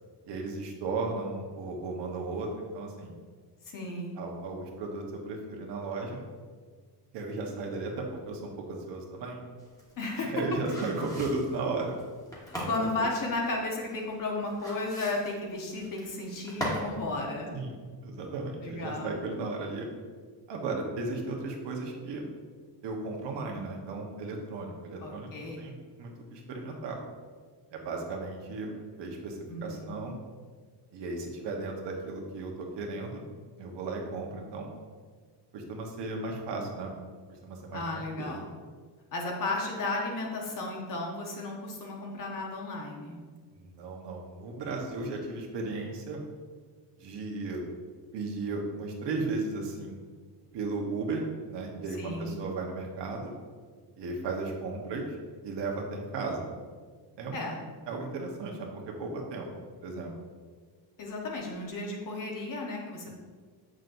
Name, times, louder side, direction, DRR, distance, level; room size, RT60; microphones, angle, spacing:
voice 1, 0.3-3.1 4.1-6.2 7.1-9.4 10.1-11.9 12.8-12.9 17.5-19.9 20.5-22.3 22.8-27.0 27.7-30.2 30.9-33.2 33.6-34.7 35.5-36.9 37.3-37.8 38.2-38.3 43.5-46.2 47.0-47.6 48.1-50.0 50.5-51.2 51.5-53.3 53.9-55.2 55.4-56.5 57.2-57.4 57.9-58.7 59.0-59.5 59.8-60.1, right 3 dB, 75° right, 0 dB, 1.3 m, -35 dB
voice 2, 3.6-4.2 10.0-10.3 12.5-17.5 18.6-19.2 25.0-25.6 29.5-29.9 37.7-38.4 39.1-43.2 52.0-52.4 57.3-57.6 61.0-63.1, left 2 dB, 45° left, 0 dB, 1.2 m, -34 dB
sound 1, 9.6-17.0 17.3-17.4, equal, 10° left, 1.2 m, -39 dB
7.7 x 6.3 x 2.6 m, 1.6 s
cardioid pair, 175°, 43 cm